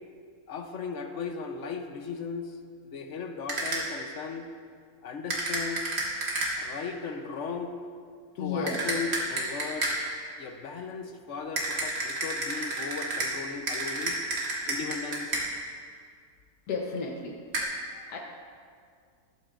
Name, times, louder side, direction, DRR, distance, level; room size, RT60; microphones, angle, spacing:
voice 1, 0.5-2.6 2.8-4.5 5.0-5.8 6.6-7.8 8.3-10.0 10.4-14.2 14.7-15.4, left 5 dB, 60° left, 6 dB, 1.0 m, -37 dB
sound 1, 3.5-4.0 5.3-6.8 8.7-10.2 11.6-15.7 17.5-17.6, right 2 dB, 65° right, 2.2 m, -31 dB
voice 2, 8.4-8.9 16.7-17.4 17.7-18.2, left 4 dB, 85° left, 0 dB, 1.5 m, -33 dB
13.5 x 12.0 x 2.5 m, 2.1 s
omnidirectional pair, 1.6 m